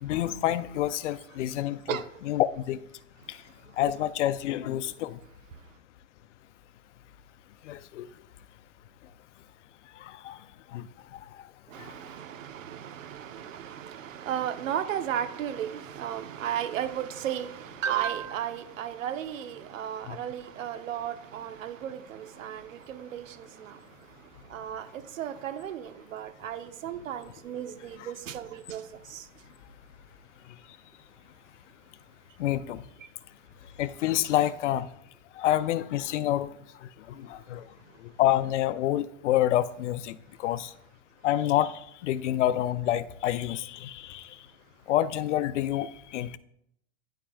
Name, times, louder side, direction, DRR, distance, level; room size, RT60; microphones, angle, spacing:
voice 1, 0.0-2.8 3.3-3.4 3.8-5.2 7.7-8.1 10.1-10.4 10.7-10.8 11.8-11.9 20.1-20.2 28.0-28.1 32.4-32.8 33.8-34.9 35.4-36.5 37.2-37.6 38.2-40.7 41.2-44.3 44.9-46.4, left 12 dB, 60° left, 0.5 m, -28 dB
voice 2, 11.7-23.7 24.5-28.8, right 10 dB, 70° right, 0.8 m, -34 dB
10.0 x 4.2 x 2.3 m
hypercardioid pair, 150°, 41 cm